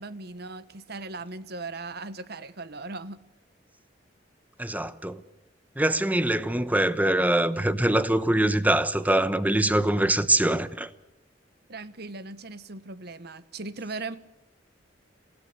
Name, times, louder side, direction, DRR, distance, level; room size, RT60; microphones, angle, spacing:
voice 1, 0.0-3.2 11.7-14.2, right 3 dB, 60° right, 1.3 m, -38 dB
voice 2, 4.6-5.2 5.8-10.9, right 1 dB, 10° right, 1.0 m, -23 dB
28.0 x 17.0 x 6.7 m
head